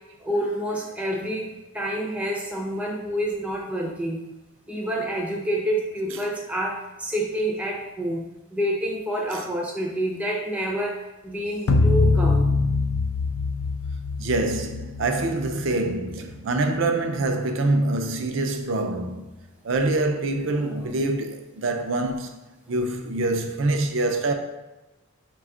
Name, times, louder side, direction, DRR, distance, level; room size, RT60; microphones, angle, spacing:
voice 1, 0.2-4.2 4.7-12.5 15.0-15.1 20.4-20.9 22.7-23.3, right 1 dB, 5° right, 0.4 m, -28 dB
sound 1, 11.7-16.1, left 3 dB, 80° left, 0.4 m, -23 dB
voice 2, 14.2-19.3 19.6-22.3 22.7-24.3, right 2 dB, 60° right, 0.4 m, -25 dB
4.9 x 2.3 x 3.6 m
head